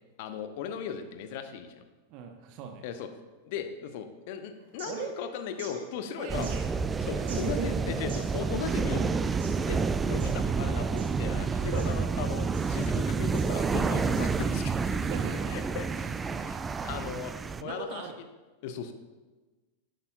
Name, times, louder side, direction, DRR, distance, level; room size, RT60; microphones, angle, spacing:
voice 1, 0.2-1.8 2.8-3.1 3.4-6.5 7.0-9.4 9.7-15.0 15.5-15.9 16.4-17.3 17.6-18.0 18.6-18.9, left 7 dB, 50° left, 8 dB, 0.8 m, -37 dB
voice 2, 2.1-2.9 4.9-5.1 6.1-6.7 6.9-7.9 11.5-11.9 14.9-15.6 15.9-16.1 17.5-18.2, right 6 dB, 45° right, 4 dB, 0.8 m, -39 dB
sound 1, 4.5-14.8, right 4 dB, 60° right, 2.1 m, -51 dB
sound 2, 6.3-17.6, right 5 dB, 15° right, 0.3 m, -29 dB
11.0 x 9.0 x 2.3 m, 1.2 s
figure-of-eight pair, 90°, 0 cm